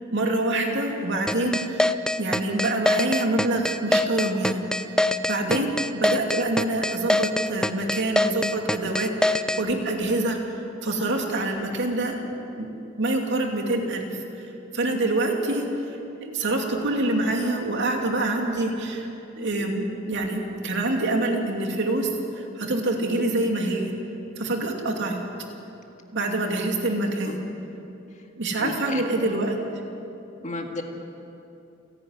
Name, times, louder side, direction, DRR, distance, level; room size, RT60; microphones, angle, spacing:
voice 1, 0.1-1.9 2.2-4.7 5.3-10.4 10.8-12.2 12.6-12.7 13.0-14.1 14.7-15.6 16.2-19.1 19.4-22.1 22.4-23.9 24.4-25.2 26.1-27.4 28.4-29.6, right 2 dB, 60° right, 2 dB, 2.7 m, -26 dB
sound 1, 1.3-9.6, left 1 dB, 5° left, 0.5 m, -23 dB
voice 2, 28.6-29.0 30.4-30.8, left 2 dB, 35° left, 3 dB, 1.9 m, -33 dB
29.0 x 11.0 x 9.7 m, 2.8 s
head